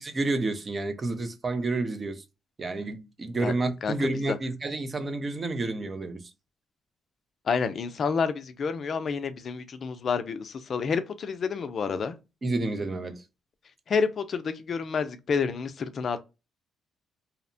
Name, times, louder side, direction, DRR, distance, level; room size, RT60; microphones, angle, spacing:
voice 1, 0.0-2.2 2.6-6.3 12.4-13.2, right 2 dB, 35° right, 0.5 m, -30 dB
voice 2, 3.8-4.4 7.4-12.2 13.9-16.2, left 5 dB, 50° left, 0.4 m, -29 dB
2.7 x 2.0 x 2.6 m
cardioid pair, 90°, 0 cm